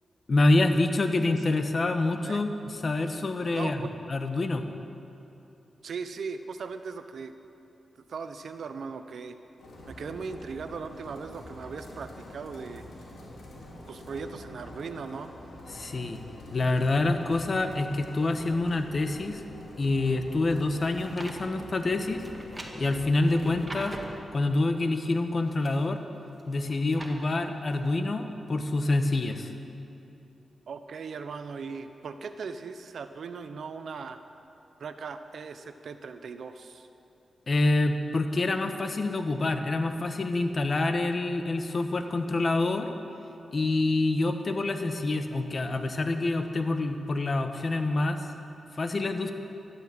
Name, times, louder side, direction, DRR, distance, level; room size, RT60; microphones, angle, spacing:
voice 1, 0.3-3.8 4.1-4.6 15.7-16.2 16.5-19.4 19.8-22.2 22.7-24.0 24.3-26.0 26.5-29.5 37.5-42.9 43.5-48.3 48.7-49.3, left 2 dB, 45° left, 7 dB, 1.2 m, -26 dB
voice 2, 3.5-3.9 5.8-7.3 8.1-9.4 9.9-12.8 13.9-15.3 30.7-34.2 34.8-36.9, right 5 dB, 75° right, 9 dB, 0.8 m, -38 dB
sound 1, 9.6-24.1, left 1 dB, 80° left, 3.7 m, -46 dB
sound 2, 20.7-21.4 22.2-24.2 25.2-25.9 26.4-27.2 27.7-27.8, right 1 dB, 15° right, 1.9 m, -43 dB
13.0 x 12.5 x 7.6 m, 2.9 s
cardioid pair, 80°, 0 cm